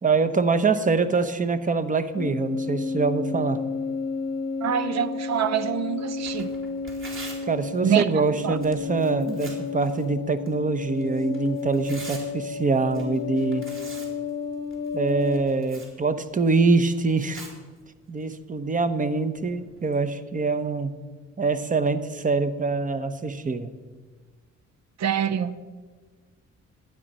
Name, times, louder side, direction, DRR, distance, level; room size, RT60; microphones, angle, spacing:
voice 1, 0.0-3.6 7.5-13.7 14.9-17.4 18.1-20.9 21.4-23.7, right 4 dB, 25° right, 12 dB, 0.8 m, -24 dB
sound 1, 2.2-15.4, left 5 dB, 50° left, 0.8 m, -32 dB
voice 2, 4.6-6.5 7.8-8.1 8.4-8.6 25.0-25.6, right 8 dB, 60° right, 14 dB, 0.8 m, -25 dB
Tearing, 6.1-20.0, right 2 dB, 45° right, 3.3 m, -47 dB
12.0 x 9.0 x 5.4 m, 1.4 s
cardioid pair, 90°, 30 cm